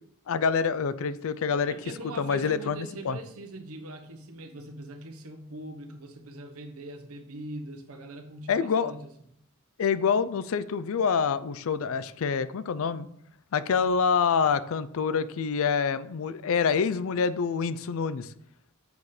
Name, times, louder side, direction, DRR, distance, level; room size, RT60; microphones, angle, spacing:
voice 1, 0.3-1.7 2.2-3.2 8.5-8.9 9.8-13.1 13.5-18.3, left 6 dB, 70° left, 15 dB, 0.4 m, -26 dB
voice 2, 1.7-9.1, right 1 dB, 85° right, 5 dB, 1.0 m, -42 dB
7.0 x 4.2 x 4.8 m, 0.71 s
head